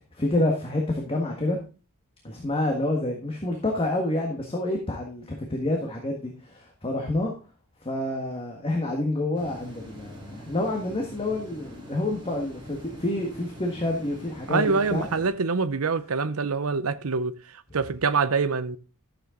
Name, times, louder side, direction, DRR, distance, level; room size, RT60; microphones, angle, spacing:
voice 1, 0.1-1.6 2.2-7.3 7.8-15.1, left 1 dB, 25° left, 1.6 m, -28 dB
sound 1, 9.3-15.3, equal, 20° right, 3.4 m, -44 dB
voice 2, 14.5-18.8, right 4 dB, 80° right, 0.7 m, -25 dB
12.5 x 7.7 x 3.8 m
head